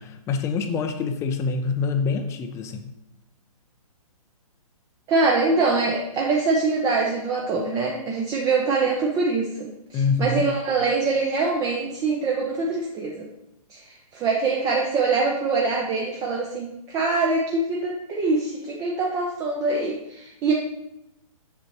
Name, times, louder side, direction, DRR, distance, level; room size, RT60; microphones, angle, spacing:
voice 1, 0.0-2.9 9.9-10.5, left 4 dB, 15° left, 7 dB, 0.6 m, -26 dB
voice 2, 5.1-13.3 13.7-20.5, right 3 dB, 20° right, -1 dB, 0.7 m, -24 dB
6.9 x 6.7 x 3.1 m, 0.87 s
hypercardioid pair, 145°, 19 cm